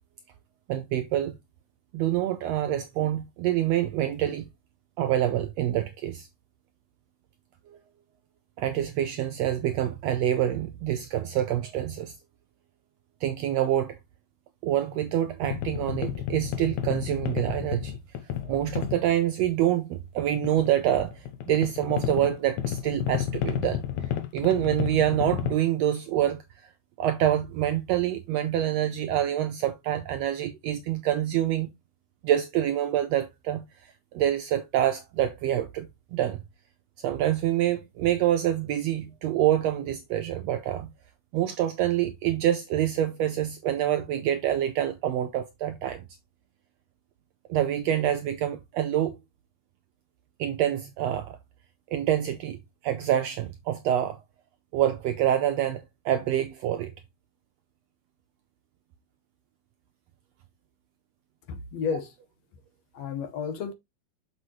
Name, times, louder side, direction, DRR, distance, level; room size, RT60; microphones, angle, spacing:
voice 1, 0.7-1.3 1.9-4.5 5.0-6.3 8.6-12.1 13.2-14.0 14.6-17.9 18.4-23.8 24.3-26.7 27.0-31.7 32.2-36.4 37.0-40.9 41.3-46.0 47.5-49.2 50.4-51.4 51.9-52.6 52.8-54.2 54.7-56.9, right 11 dB, 85° right, 1.5 m, -26 dB
sound 1, 15.4-19.0 20.3-25.5, left 10 dB, 90° left, 2.4 m, -32 dB
voice 2, 61.5-62.1 62.9-63.7, left 6 dB, 65° left, 1.9 m, -31 dB
6.5 x 6.0 x 3.0 m
omnidirectional pair, 3.5 m